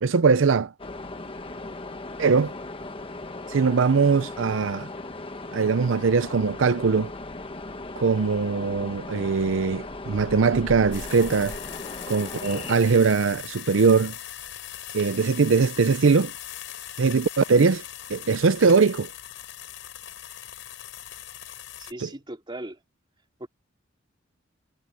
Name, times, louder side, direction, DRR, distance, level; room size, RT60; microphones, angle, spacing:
voice 1, 0.0-0.7 2.2-2.5 3.5-4.9 5.5-7.1 8.0-11.6 12.1-14.1 14.9-16.3 17.0-17.8 18.1-19.1 22.0-22.1, right 5 dB, 85° right, 0.6 m, -21 dB
sound 1, 0.8-12.8, left 2 dB, 30° left, 1.3 m, -37 dB
sound 2, 10.9-21.9, left 11 dB, 75° left, 7.7 m, -40 dB
voice 2, 21.8-22.8 23.4-23.5, right 1 dB, 25° right, 2.8 m, -38 dB
head